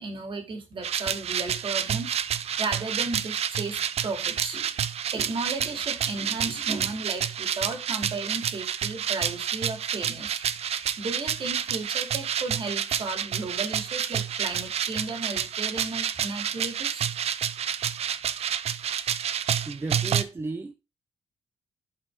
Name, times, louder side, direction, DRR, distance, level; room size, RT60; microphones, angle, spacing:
voice 1, 0.0-2.2 2.6-4.7 5.1-10.4 11.0-17.1, right 3 dB, 50° right, 3.0 m, -34 dB
sound 1, 0.8-20.2, right 9 dB, 65° right, 0.7 m, -29 dB
voice 2, 19.6-20.7, right 3 dB, 20° right, 0.7 m, -34 dB
11.5 x 5.7 x 3.7 m
cardioid pair, 120°, 11 cm